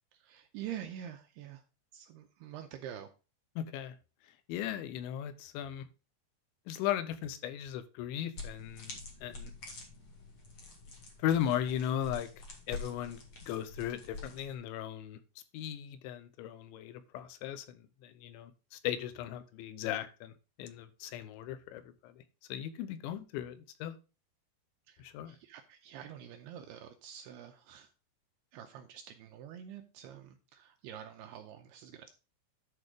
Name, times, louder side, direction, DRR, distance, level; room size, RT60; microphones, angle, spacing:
voice 1, 0.1-1.6 1.9-3.1 24.9-27.9 28.5-32.1, right 10 dB, 80° right, 6 dB, 2.4 m, -47 dB
voice 2, 3.6-4.0 4.5-5.9 6.7-9.5 11.2-12.3 12.7-15.2 15.5-22.2 22.5-23.9 25.0-25.4, left 10 dB, 85° left, 11 dB, 3.1 m, -37 dB
sound 1, 8.3-14.5, left 3 dB, 45° left, 1.7 m, -47 dB
10.5 x 4.4 x 5.0 m, 0.31 s
omnidirectional pair, 5.3 m